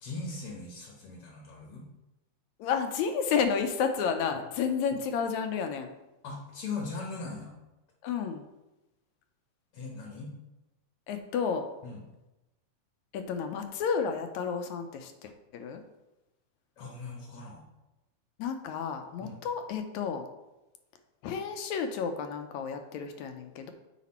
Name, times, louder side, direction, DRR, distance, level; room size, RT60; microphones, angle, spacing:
voice 1, 0.0-1.8 6.2-7.5 9.7-10.3 11.8-12.0 16.8-17.6 19.2-19.4, left 3 dB, 60° left, -1 dB, 1.7 m, -39 dB
voice 2, 2.6-5.9 8.0-8.4 11.1-11.6 13.1-15.8 18.4-20.3 21.2-23.7, left 6 dB, 75° left, 6 dB, 1.9 m, -31 dB
8.2 x 5.1 x 4.2 m, 1.0 s
omnidirectional pair, 3.6 m